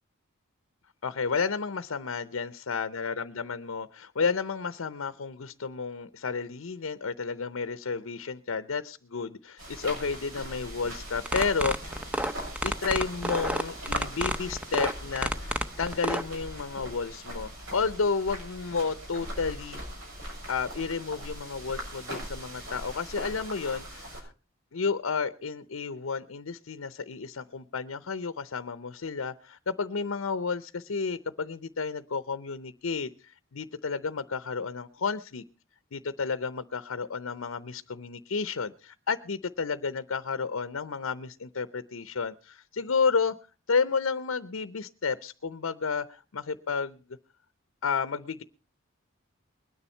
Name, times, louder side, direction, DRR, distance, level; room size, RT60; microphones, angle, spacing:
voice 1, 1.0-12.0 12.6-19.8 20.5-24.3 24.7-35.4 35.9-43.3 43.7-47.0 47.8-48.4, left 5 dB, 85° left, 13 dB, 0.7 m, -31 dB
sound 1, 9.6-24.2, right 1 dB, 75° right, 6.9 m, -40 dB
sound 2, 11.3-16.2, right 1 dB, 5° right, 0.6 m, -29 dB
21.5 x 10.0 x 4.4 m, 0.34 s
head